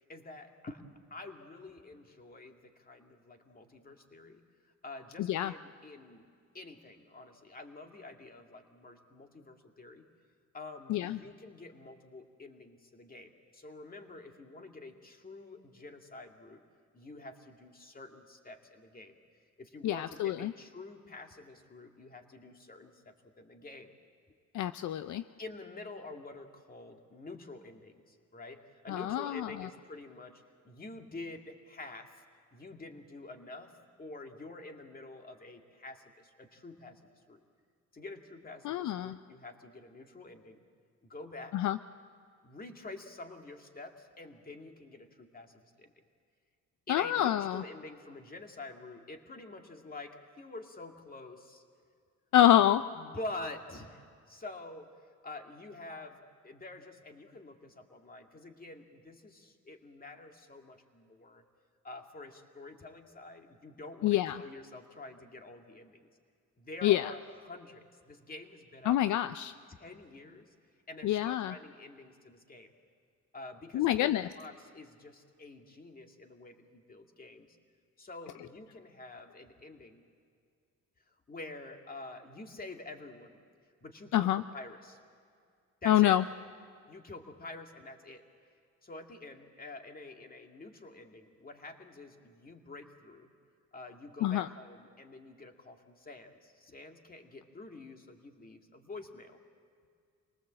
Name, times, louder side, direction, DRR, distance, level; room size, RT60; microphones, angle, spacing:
voice 1, 0.1-0.8 1.1-4.4 4.8-6.3 6.5-10.0 10.5-16.6 16.9-19.2 19.6-23.9 25.4-32.2 32.5-37.4 37.9-40.6 41.1-41.6 42.4-45.9 46.9-51.6 53.0-55.0 55.2-61.4 61.8-66.1 66.6-69.0 69.7-70.5 70.9-72.7 73.3-77.5 78.0-80.0 81.1-83.4 83.8-85.0 85.8-86.2 86.9-88.2 88.8-93.3 93.7-99.4, left 2 dB, 30° left, 4 dB, 2.3 m, -47 dB
voice 2, 5.2-5.5 10.9-11.2 19.8-20.5 24.5-25.2 28.9-29.5 38.6-39.2 41.5-41.8 46.9-47.6 52.3-52.8 64.0-64.4 66.8-67.1 68.9-69.5 71.0-71.5 73.7-74.2 84.1-84.4 85.9-86.2 94.2-94.5, left 13 dB, 75° left, 12 dB, 0.6 m, -26 dB
25.5 x 19.0 x 7.6 m, 2.2 s
cardioid pair, 90°, 30 cm